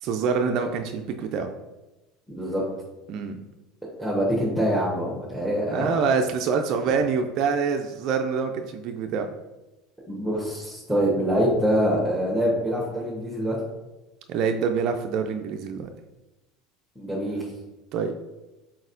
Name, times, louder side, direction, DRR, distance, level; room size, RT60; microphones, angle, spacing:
voice 1, 0.0-1.5 3.1-3.4 5.7-9.3 14.3-15.9 17.9-18.1, right 5 dB, 55° right, 4 dB, 0.3 m, -26 dB
voice 2, 2.3-2.6 4.0-5.9 10.1-13.6 17.0-17.5, equal, ahead, -5 dB, 1.1 m, -25 dB
4.2 x 4.0 x 2.6 m, 1.0 s
hypercardioid pair, 75°, 0 cm